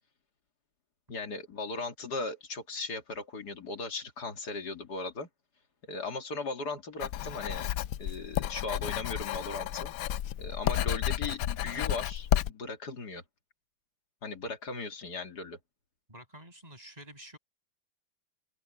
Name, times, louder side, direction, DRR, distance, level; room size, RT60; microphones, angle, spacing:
voice 1, 1.1-5.3 5.9-7.7 8.0-9.9 10.4-13.2 14.2-15.6, left 3 dB, 55° left, 2.8 m, -37 dB
Writing, 7.0-12.5, left 11 dB, 80° left, 0.7 m, -31 dB
voice 2, 16.1-17.4, equal, 20° right, 6.4 m, -49 dB
omnidirectional pair, 2.1 m